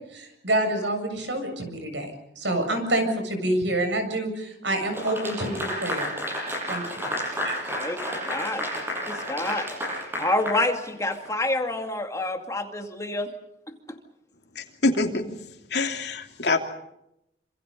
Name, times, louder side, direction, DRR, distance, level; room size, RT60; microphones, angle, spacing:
voice 1, 0.1-6.1 6.7-7.1 7.4-7.7, right 1 dB, 80° right, 6 dB, 7.4 m, -27 dB
Clapping / Applause, 4.9-11.3, equal, 10° right, 7.7 m, -31 dB
voice 2, 8.3-8.7 9.0-9.7 10.2-13.3 13.7-14.0, left 2 dB, 15° left, 4 dB, 2.4 m, -28 dB
voice 3, 14.5-15.2 15.7-16.6, left 3 dB, 65° left, 4 dB, 3.0 m, -25 dB
27.5 x 27.0 x 5.5 m, 0.83 s
head